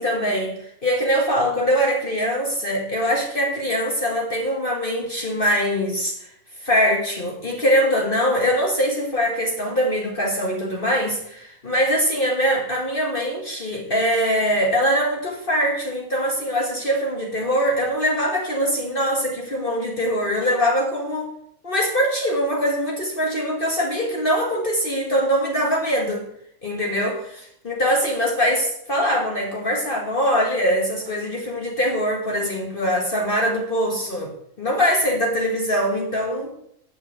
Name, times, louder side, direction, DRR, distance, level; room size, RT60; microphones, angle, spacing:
voice 1, 0.0-6.3 6.6-21.3 21.6-26.3 26.6-36.5, equal, 40° left, 0 dB, 1.9 m, -22 dB
8.7 x 6.7 x 8.0 m, 0.71 s
omnidirectional pair, 1.4 m